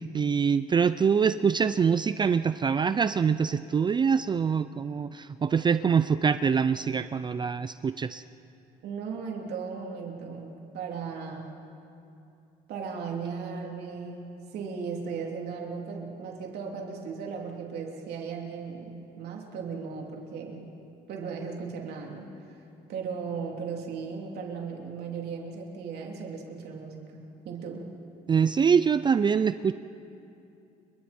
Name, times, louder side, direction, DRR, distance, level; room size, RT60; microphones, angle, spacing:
voice 1, 0.0-8.2 28.3-29.7, right 6 dB, 25° right, 13 dB, 0.4 m, -24 dB
voice 2, 8.8-11.6 12.7-20.7 21.1-22.3 22.9-27.9, right 5 dB, 75° right, 1 dB, 3.2 m, -37 dB
29.5 x 23.5 x 4.4 m, 2.7 s
cardioid pair, 110°, 17 cm